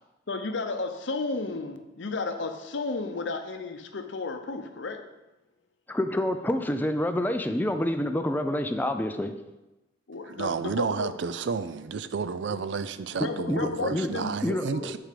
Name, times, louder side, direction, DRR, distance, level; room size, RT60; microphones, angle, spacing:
voice 1, 0.3-5.0 10.1-11.1 12.5-12.6 13.1-14.3 14.7-14.9, left 3 dB, 70° left, 0.7 m, -33 dB
voice 2, 5.9-9.3 13.2-14.1 14.4-15.0, left 1 dB, 10° left, 0.4 m, -28 dB
voice 3, 10.2-15.0, right 5 dB, 65° right, 0.4 m, -31 dB
6.4 x 4.8 x 6.7 m
head